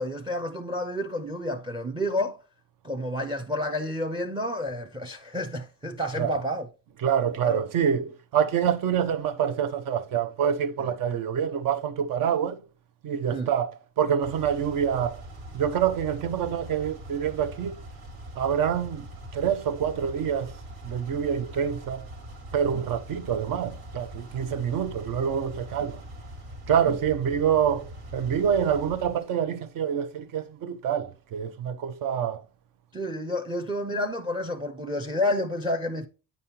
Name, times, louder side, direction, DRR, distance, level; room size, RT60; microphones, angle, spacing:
voice 1, 0.0-2.4 2.8-6.7 7.4-7.6 10.8-10.9 13.3-13.5 22.6-22.8 32.9-36.1, left 1 dB, 15° right, 0.5 m, -30 dB
voice 2, 7.0-12.6 13.0-15.2 15.5-17.8 18.4-19.1 19.3-20.5 20.8-22.1 22.5-26.0 26.7-32.4, right 8 dB, 60° right, 0.8 m, -26 dB
sound 1, 14.2-29.3, right 1 dB, 85° right, 2.4 m, -42 dB
8.8 x 5.3 x 2.8 m
cardioid pair, 125°, 38 cm